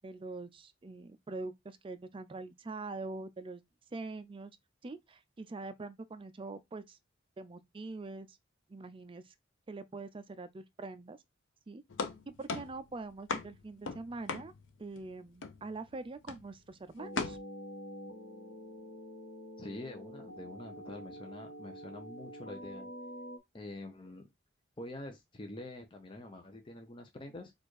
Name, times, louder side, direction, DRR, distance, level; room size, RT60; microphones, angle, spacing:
voice 1, 0.0-3.6 3.9-4.6 4.8-7.0 7.4-8.4 8.7-9.3 9.7-11.2 11.7-11.8 12.3-14.5 14.8-17.4, right 3 dB, 25° right, 0.4 m, -44 dB
sound 1, 11.9-15.1 15.4-15.9 16.3-16.6 17.2-17.4, left 4 dB, 80° left, 0.6 m, -38 dB
sound 2, 17.0-23.4, equal, 60° left, 1.0 m, -47 dB
voice 2, 19.6-22.9 23.5-24.3 24.8-27.5, left 2 dB, 25° left, 0.6 m, -46 dB
4.4 x 2.5 x 4.7 m
head